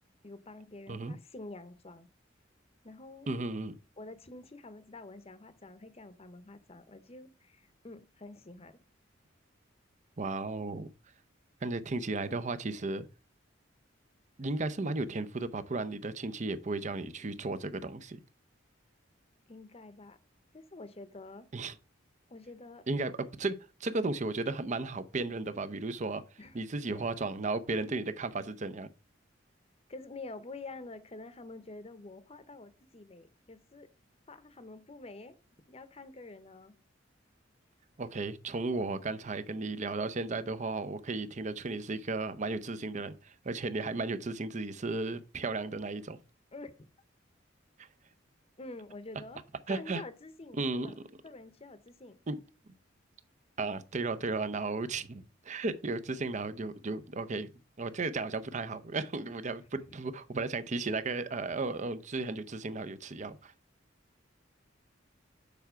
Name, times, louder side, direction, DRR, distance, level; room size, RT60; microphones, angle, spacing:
voice 1, 0.2-2.1 2.8-3.3 4.0-8.8 19.5-20.2 20.5-21.5 22.3-22.9 26.4-26.6 26.9-27.1 27.8-28.0 29.9-33.9 34.3-35.4 35.7-36.8 46.5-46.7 48.6-49.4 49.7-50.9 51.2-52.2, left 2 dB, 30° left, 0.8 m, -47 dB
voice 2, 3.3-3.7 10.2-10.9 11.6-13.1 14.4-18.2 21.5-21.7 22.9-26.2 26.5-28.9 38.0-46.2 49.7-50.0 50.6-50.9 52.3-52.4 53.6-57.5 57.8-63.5, right 3 dB, 40° right, 0.6 m, -34 dB
7.0 x 4.6 x 5.7 m
head